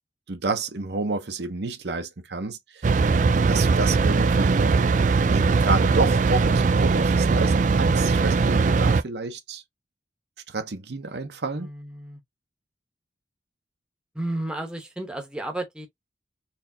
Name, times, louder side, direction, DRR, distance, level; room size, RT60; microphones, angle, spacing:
voice 1, 0.3-3.1 3.5-4.7 5.3-9.6 10.5-11.7, right 3 dB, 65° right, 0.8 m, -29 dB
sound 1, 2.8-9.0, right 4 dB, 40° right, 0.3 m, -20 dB
voice 2, 11.5-12.2 14.1-15.9, right 1 dB, 5° right, 0.9 m, -32 dB
4.2 x 3.2 x 2.7 m
head